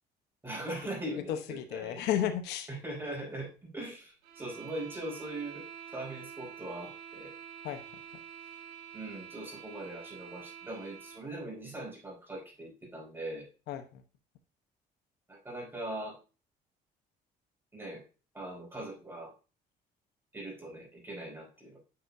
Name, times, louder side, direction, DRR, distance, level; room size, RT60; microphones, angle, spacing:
voice 1, 0.4-2.0 2.7-5.7 5.9-7.3 8.9-13.5 15.3-16.2 17.7-18.0 18.3-19.3 20.3-21.8, right 1 dB, 15° right, -1 dB, 4.5 m, -41 dB
voice 2, 1.1-2.7 7.6-8.0 13.7-14.0, left 10 dB, 85° left, 9 dB, 0.9 m, -33 dB
sound 1, 4.2-11.3, right 9 dB, 80° right, 2.3 m, -47 dB
9.7 x 5.7 x 2.6 m, 0.33 s
cardioid pair, 110°, 17 cm